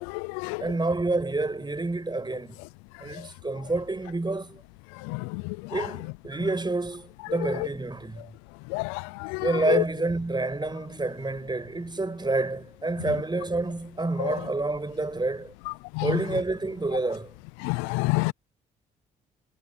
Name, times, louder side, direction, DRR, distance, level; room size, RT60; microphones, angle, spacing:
voice 1, 0.6-2.6 3.0-4.6 5.7-8.3 9.4-15.5 16.0-17.3, right 2 dB, 20° right, 5.8 m, -28 dB
voice 2, 8.7-9.8 16.0-16.1 17.6-18.3, left 26 dB, 85° left, 0.6 m, -27 dB
hypercardioid pair, 50°, 20 cm